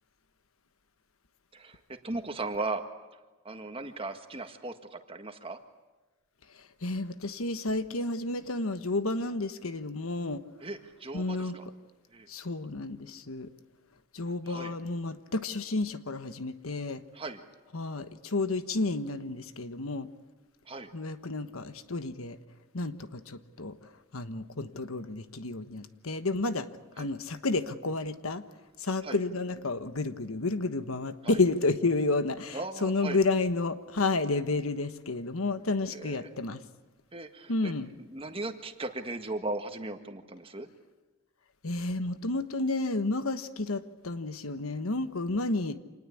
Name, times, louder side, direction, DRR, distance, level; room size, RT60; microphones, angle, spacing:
voice 1, 1.5-2.8 3.4-5.6 10.6-11.6 12.1-12.3 14.4-14.7 17.1-17.4 20.7-20.9 27.0-27.1 29.0-29.2 31.2-31.4 32.5-33.2 35.9-36.3 37.1-37.7 38.0-40.7, right 2 dB, 25° right, 6 dB, 1.7 m, -37 dB
voice 2, 6.8-10.4 11.1-11.6 12.3-13.5 14.1-17.0 17.7-20.1 20.9-22.4 22.7-23.7 24.1-26.7 27.0-28.4 28.8-36.6 37.5-37.9 41.6-45.8, left 3 dB, 80° left, 11 dB, 1.3 m, -31 dB
27.0 x 20.0 x 8.6 m, 1.2 s
head